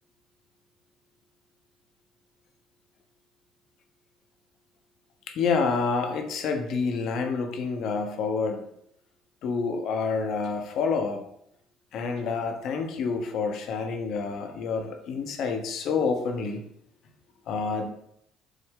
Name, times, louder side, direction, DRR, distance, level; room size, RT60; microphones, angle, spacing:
voice 1, 5.3-8.6 9.4-11.2 11.9-16.6 17.5-17.9, left 4 dB, 60° left, 4 dB, 0.6 m, -28 dB
4.7 x 2.0 x 3.6 m, 0.74 s
hypercardioid pair, 55°, 0 cm